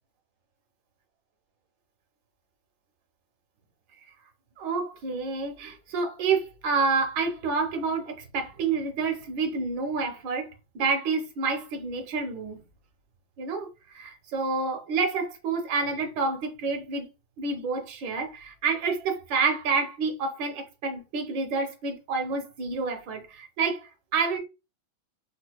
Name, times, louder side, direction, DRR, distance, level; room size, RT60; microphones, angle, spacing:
voice 1, 4.6-12.6 13.4-17.1 17.4-24.4, right 4 dB, 75° right, 1.5 m, -28 dB
4.4 x 2.7 x 2.2 m
omnidirectional pair, 2.1 m